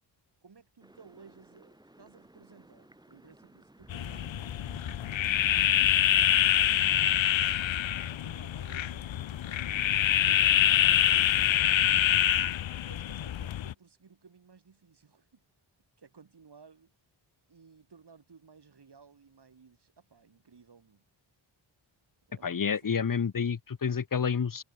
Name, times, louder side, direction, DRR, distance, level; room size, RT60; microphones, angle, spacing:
voice 1, 0.4-4.6 5.6-7.8 8.1-12.1 12.8-15.5 16.0-16.9 17.5-21.0 22.3-22.9, right 5 dB, 55° right, 8.0 m, -57 dB
sound 1, 0.8-12.5, right 1 dB, 10° right, 1.7 m, -52 dB
sound 2, 3.9-13.7, left 11 dB, 70° left, 0.7 m, -25 dB
voice 2, 22.4-24.6, left 6 dB, 45° left, 1.3 m, -29 dB
wide cardioid pair, 125°, 47 cm